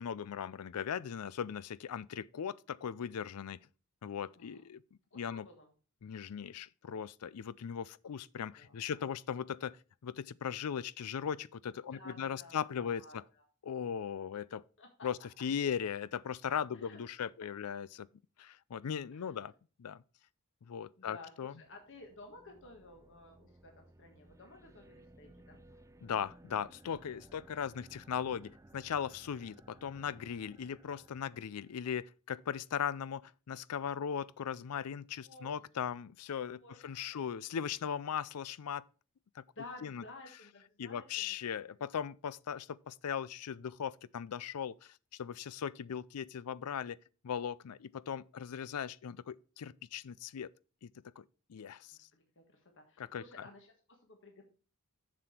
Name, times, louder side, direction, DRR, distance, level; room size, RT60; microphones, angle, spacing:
voice 1, 0.0-3.6 4.0-4.8 5.1-5.5 6.0-9.8 10.0-13.2 13.6-14.6 15.0-18.1 18.4-19.5 19.8-20.0 20.6-21.5 26.0-38.8 39.4-39.5 39.8-40.0 40.8-47.0 47.2-50.5 50.8-50.9 51.2-51.3 51.5-52.1 53.0-53.5, left 8 dB, 80° left, 0.4 m, -38 dB
voice 2, 4.4-4.7 5.1-5.7 8.6-9.0 11.9-13.4 14.8-15.1 16.7-17.0 19.1-19.5 21.0-25.6 35.2-35.6 36.6-37.2 39.5-41.3 41.7-41.8 51.9-54.4, left 2 dB, 60° left, 1.6 m, -54 dB
sound 1, 21.5-32.0, right 1 dB, 15° right, 0.4 m, -60 dB
7.3 x 6.8 x 4.3 m
head